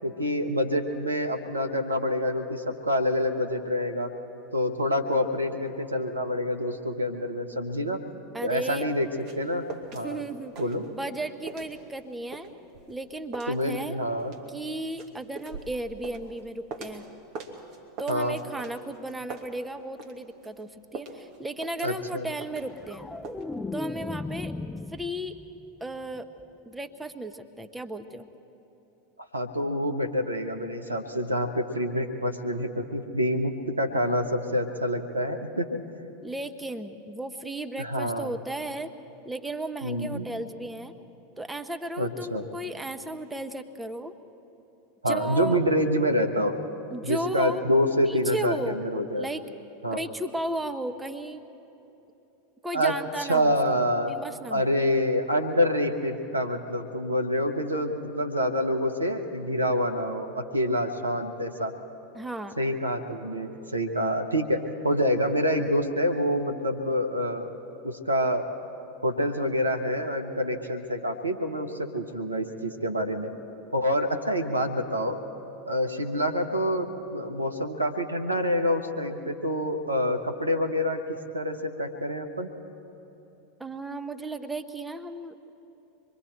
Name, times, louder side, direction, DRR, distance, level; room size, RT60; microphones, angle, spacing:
voice 1, 0.0-4.1 4.5-8.0 8.4-9.1 9.3-9.6 9.9-10.2 10.6-10.8 13.5-14.3 18.1-18.4 21.8-22.2 29.3-35.8 37.8-38.3 39.8-40.3 42.0-42.4 45.0-46.5 47.0-49.3 49.8-50.0 52.7-52.9 53.2-54.1 54.5-61.7 62.6-67.5 67.8-68.5 69.0-73.3 73.7-75.2 75.6-82.5, equal, 90° right, 6 dB, 1.2 m, -27 dB
voice 2, 8.3-8.9 10.0-10.5 10.9-12.5 12.9-14.0 14.5-17.0 18.0-23.1 23.7-24.5 24.9-25.4 25.8-26.3 26.7-28.3 36.2-38.9 39.2-40.9 41.4-44.1 45.1-45.6 46.9-47.6 48.0-48.8 49.2-49.4 49.9-51.4 52.6-53.5 54.1-54.7 62.1-62.6 83.6-85.4, right 1 dB, 10° right, 7 dB, 1.0 m, -34 dB
sound 1, 8.8-10.1 10.3-11.2 11.5-17.1 17.3-20.2 20.4-23.0 23.2-23.4, right 4 dB, 50° right, 2.1 m, -42 dB
sound 2, 22.5-25.7 26.0-26.4, left 3 dB, 10° left, 0.5 m, -36 dB
25.5 x 22.0 x 4.5 m, 3.0 s
figure-of-eight pair, 85°, 0 cm